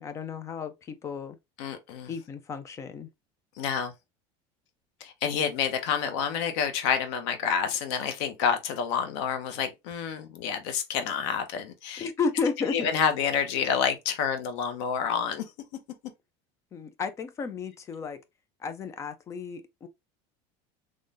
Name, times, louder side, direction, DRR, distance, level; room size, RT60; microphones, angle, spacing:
voice 1, 0.0-1.4 2.1-3.1 12.0-12.9 16.7-18.2 18.6-19.9, left 5 dB, 20° left, 0.4 m, -33 dB
voice 2, 1.6-2.1 3.6-3.9 5.0-12.1 12.7-15.5, left 7 dB, 75° left, 0.8 m, -28 dB
3.8 x 3.1 x 2.5 m
cardioid pair, 170°, 15 cm